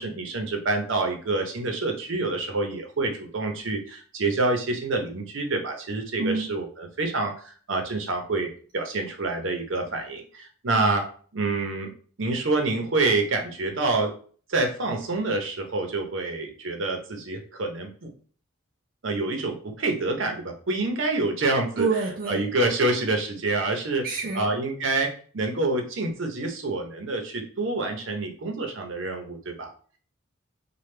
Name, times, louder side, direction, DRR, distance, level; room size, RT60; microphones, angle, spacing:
voice 1, 0.0-11.0 11.3-11.9 12.2-14.1 14.5-18.1 19.0-21.9 22.3-24.0 24.4-29.7, right 2 dB, 65° right, 3 dB, 0.7 m, -27 dB
voice 2, 6.2-6.5 21.8-22.5 24.0-24.6, right 4 dB, 45° right, 1 dB, 0.3 m, -28 dB
3.3 x 2.2 x 3.2 m, 0.43 s
head